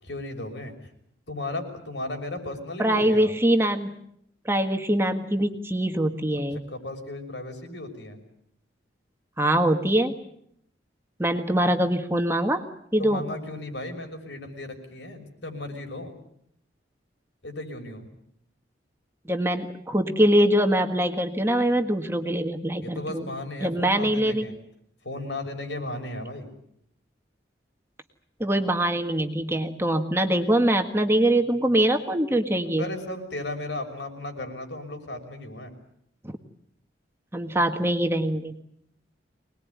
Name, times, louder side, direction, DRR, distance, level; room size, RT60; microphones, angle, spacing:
voice 1, 0.0-0.9 1.3-3.3 6.3-8.2 13.0-16.2 17.4-18.1 22.8-24.6 25.0-26.5 32.7-35.8, left 2 dB, 70° left, 4 dB, 5.9 m, -35 dB
voice 2, 2.8-3.9 4.4-6.6 9.4-10.1 11.2-12.6 12.9-13.2 19.3-23.2 23.6-24.5 28.4-32.8 37.3-38.6, right 1 dB, 15° right, 5 dB, 1.6 m, -23 dB
25.0 x 20.5 x 9.6 m, 0.73 s
head